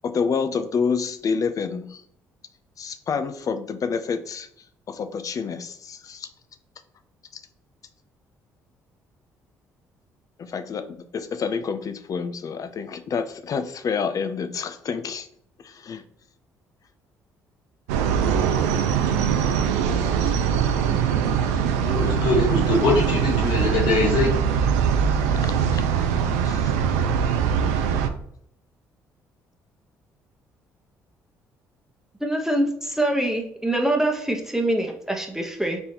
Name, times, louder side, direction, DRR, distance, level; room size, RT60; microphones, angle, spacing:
voice 1, 0.0-2.0 2.8-4.5 4.9-6.3 7.3-7.4 10.4-15.3 15.6-16.0 25.4-25.8 26.4-26.7, left 5 dB, 45° left, 10 dB, 0.5 m, -28 dB
sound 1, 17.9-28.1, right 7 dB, 85° right, 0.4 m, -22 dB
voice 2, 21.8-24.3, left 2 dB, 70° left, -2 dB, 1.7 m, -22 dB
voice 3, 32.2-35.8, right 1 dB, 5° right, 2 dB, 0.9 m, -24 dB
4.2 x 3.6 x 2.8 m, 0.67 s
hypercardioid pair, 55°, 8 cm